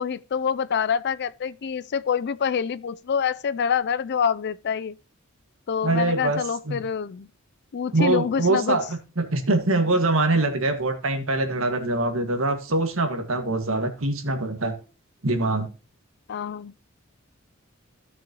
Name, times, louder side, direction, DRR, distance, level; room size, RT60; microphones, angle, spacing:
voice 1, 0.0-5.0 5.7-7.3 7.7-8.8 16.3-16.7, left 7 dB, 55° left, 0.4 m, -26 dB
voice 2, 5.8-6.4 6.7-6.8 7.9-14.7 15.2-15.7, right 2 dB, 70° right, 1.8 m, -23 dB
16.0 x 6.3 x 2.9 m
head